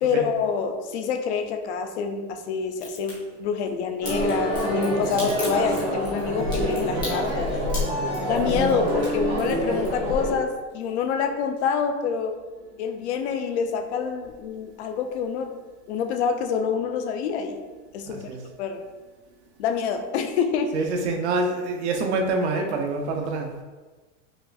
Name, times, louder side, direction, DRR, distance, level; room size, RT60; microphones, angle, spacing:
voice 1, 0.0-7.7 8.2-12.3 12.8-15.5 15.9-17.6 17.9-18.3 18.6-18.9 19.6-20.8, left 6 dB, 60° left, 5 dB, 0.5 m, -26 dB
Crack, 2.8-3.1 4.0-10.3 10.6-11.3 11.6-11.7, left 2 dB, 10° left, 0.7 m, -38 dB
sound 1, 4.0-10.3, equal, 30° right, 1.4 m, -26 dB
voice 2, 18.1-18.4 20.7-23.6, right 3 dB, 60° right, 3 dB, 0.6 m, -26 dB
5.4 x 2.4 x 2.3 m, 1.3 s
supercardioid pair, 180°, 39 cm